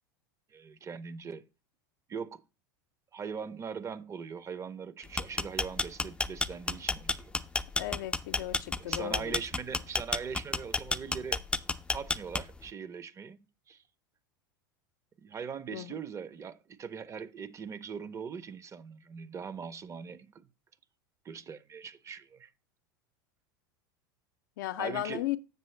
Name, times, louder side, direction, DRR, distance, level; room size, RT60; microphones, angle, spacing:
voice 1, 0.5-1.5 2.1-2.4 3.1-7.3 8.8-11.4 11.9-13.4 13.7-13.8 15.2-20.5 21.2-22.5 24.8-25.2, right 6 dB, 25° right, 0.6 m, -41 dB
sound 1, 5.0-12.7, left 3 dB, 10° left, 0.4 m, -30 dB
voice 2, 7.8-9.4 15.7-16.0 24.6-25.4, left 14 dB, 70° left, 0.5 m, -35 dB
7.4 x 6.7 x 3.2 m
hypercardioid pair, 100°, 11 cm